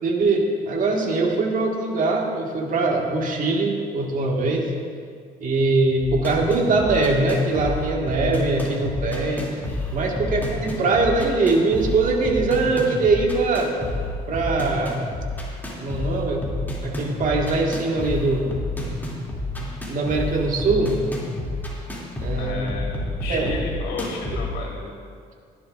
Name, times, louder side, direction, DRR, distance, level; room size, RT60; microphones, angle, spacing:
voice 1, 0.0-4.7 5.4-9.5 9.9-13.7 14.3-15.0 15.8-18.6 19.6-21.0 22.2-22.6 23.3-23.5, right 3 dB, 50° right, 1 dB, 1.7 m, -22 dB
sound 1, 6.0-24.5, left 1 dB, 10° left, 2.5 m, -30 dB
voice 2, 22.4-24.9, left 3 dB, 85° left, -1 dB, 2.9 m, -33 dB
17.5 x 11.0 x 2.5 m, 2.1 s
cardioid pair, 110°, 17 cm